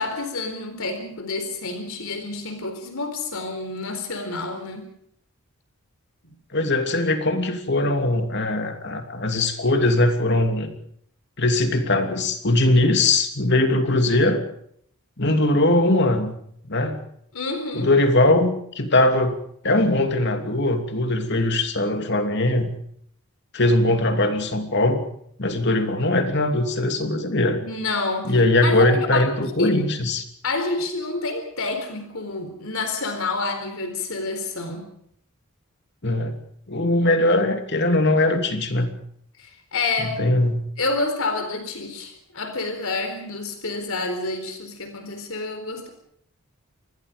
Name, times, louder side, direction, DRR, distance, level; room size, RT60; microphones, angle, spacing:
voice 1, 0.0-4.9 17.3-17.9 27.6-28.3 28.6-28.9 29.6-29.8 30.4-34.9 39.4-40.2 40.8-45.9, left 3 dB, 65° left, 7 dB, 4.1 m, -28 dB
voice 2, 6.5-10.7 11.4-14.4 15.2-16.3 16.7-17.0 17.7-19.4 19.6-22.7 23.5-25.0 25.4-27.7 28.2-30.2 36.0-36.4 36.7-38.9 40.0-40.6, left 2 dB, 50° left, 6 dB, 2.9 m, -20 dB
27.0 x 20.5 x 5.2 m, 0.65 s
head